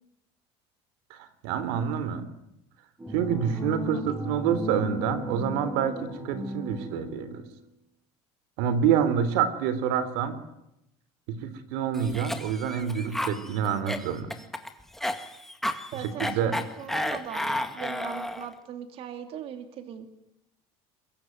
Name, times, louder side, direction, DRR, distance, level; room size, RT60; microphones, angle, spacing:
voice 1, 1.1-2.2 3.1-7.4 8.6-10.3 11.3-14.3 16.2-16.6, right 8 dB, 85° right, 13 dB, 3.3 m, -27 dB
sound 1, 3.0-7.5, equal, 15° right, 7.4 m, -36 dB
Cough, 11.9-18.5, left 1 dB, 5° left, 1.9 m, -32 dB
voice 2, 15.9-20.1, right 9 dB, 50° right, 7 dB, 2.9 m, -40 dB
23.0 x 23.0 x 9.5 m, 0.83 s
cardioid pair, 140°, 13 cm